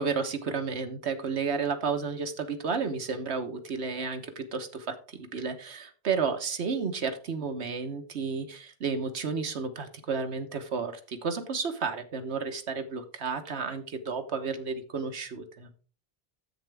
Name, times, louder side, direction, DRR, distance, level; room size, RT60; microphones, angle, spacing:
voice 1, 0.0-15.7, right 5 dB, 90° right, 7 dB, 1.4 m, -32 dB
10.0 x 7.9 x 3.5 m, 0.39 s
omnidirectional pair, 1.1 m